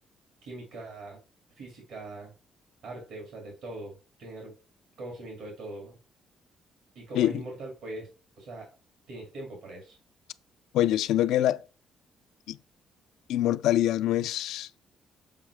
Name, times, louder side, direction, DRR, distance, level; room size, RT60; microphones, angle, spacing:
voice 1, 0.4-1.2 1.6-2.3 2.8-4.5 5.0-6.0 6.9-8.1 8.4-8.7 9.1-10.0, right 2 dB, 80° right, 2.3 m, -41 dB
voice 2, 10.7-11.6 12.5-12.6 13.3-14.8, left 12 dB, 85° left, 0.3 m, -25 dB
7.3 x 4.8 x 3.3 m
cardioid pair, 90°, 0 cm